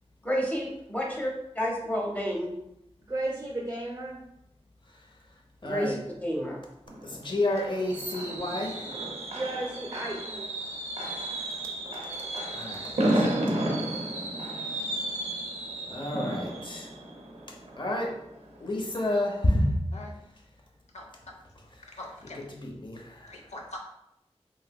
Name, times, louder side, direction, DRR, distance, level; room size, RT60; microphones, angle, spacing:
voice 1, 0.2-2.5 5.6-6.6, equal, 15° left, -1 dB, 0.8 m, -30 dB
voice 2, 3.1-4.2 9.3-10.5, right 2 dB, 30° right, -2 dB, 0.5 m, -34 dB
voice 3, 5.6-6.0 7.0-9.1 12.5-13.4 15.9-16.9 17.8-18.2 18.6-19.8 22.3-23.3, left 1 dB, 45° left, 0 dB, 0.7 m, -30 dB
Fireworks, 6.9-18.6 18.9-19.2 19.5-19.6, right 1 dB, 80° right, 0.6 m, -32 dB
voice 4, 22.0-22.4 23.3-23.8, left 1 dB, 90° left, 1 dB, 0.5 m, -42 dB
3.2 x 2.8 x 2.2 m, 0.83 s
wide cardioid pair, 40°, 11 cm